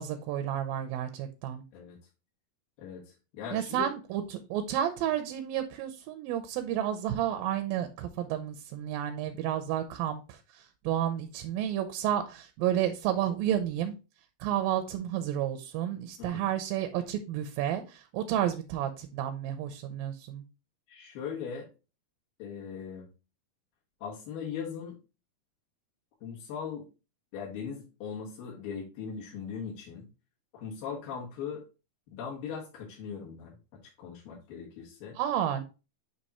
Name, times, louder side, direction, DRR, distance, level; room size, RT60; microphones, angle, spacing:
voice 1, 0.0-1.6 3.5-14.0 14.4-20.4 35.1-35.6, right 11 dB, 85° right, 2.4 m, -31 dB
voice 2, 2.8-3.9 16.2-16.4 20.9-21.7 22.4-23.1 24.0-25.0 26.2-26.9 27.3-30.0 30.5-31.6 32.1-33.5 34.0-35.2, left 6 dB, 80° left, 3.3 m, -39 dB
8.1 x 3.0 x 4.1 m
omnidirectional pair, 4.1 m